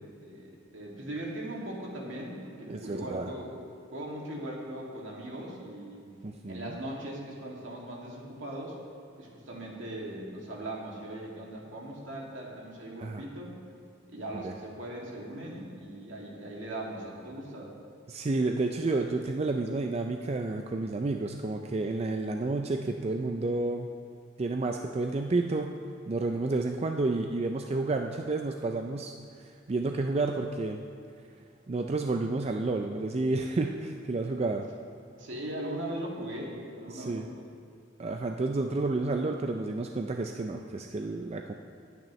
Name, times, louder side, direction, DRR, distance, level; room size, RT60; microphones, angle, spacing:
voice 1, 0.0-3.6 3.9-6.1 6.5-8.8 9.2-13.6 14.1-17.7 35.2-37.5, right 1 dB, 75° right, -3 dB, 2.3 m, -39 dB
voice 2, 2.7-3.3 6.2-6.8 13.0-13.2 14.4-14.5 18.1-23.9 24.4-25.8 26.1-29.1 29.7-30.8 31.7-34.6 36.9-37.3 38.0-41.5, right 3 dB, 30° right, 4 dB, 0.4 m, -30 dB
19.0 x 9.1 x 3.2 m, 2.3 s
head